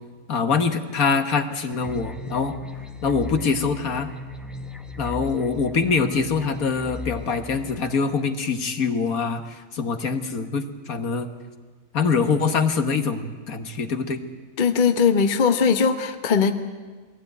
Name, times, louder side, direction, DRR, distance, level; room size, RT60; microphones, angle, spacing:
voice 1, 0.3-2.5 3.0-4.1 5.0-11.3 11.9-14.2, left 5 dB, 65° left, 7 dB, 1.8 m, -24 dB
sound 1, 1.7-7.8, left 3 dB, ahead, 0.7 m, -37 dB
voice 2, 14.6-16.5, left 6 dB, 35° left, 7 dB, 1.0 m, -19 dB
21.5 x 16.0 x 9.2 m, 1.4 s
omnidirectional pair, 1.7 m